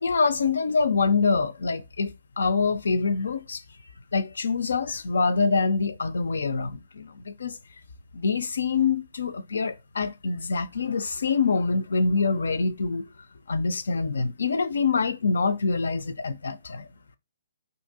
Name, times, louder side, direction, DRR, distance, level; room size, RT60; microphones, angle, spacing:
voice 1, 0.0-3.6 4.1-7.6 8.1-13.1 13.5-16.9, left 4 dB, 75° left, 0.4 m, -25 dB
2.9 x 2.6 x 3.8 m
hypercardioid pair, 145°, 0 cm